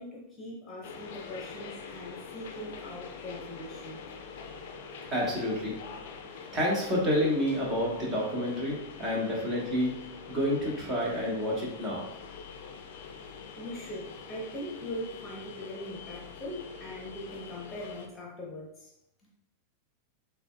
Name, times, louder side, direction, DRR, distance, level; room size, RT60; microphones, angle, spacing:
voice 1, 0.0-4.0 13.6-18.9, left 1 dB, 15° left, -3 dB, 0.9 m, -41 dB
sound 1, 0.8-18.1, left 5 dB, 55° left, 0.5 m, -45 dB
voice 2, 5.1-5.8 6.5-9.9 10.3-12.0, equal, 30° right, -3 dB, 1.4 m, -29 dB
6.6 x 2.3 x 2.3 m, 0.80 s
figure-of-eight pair, 90°, 0 cm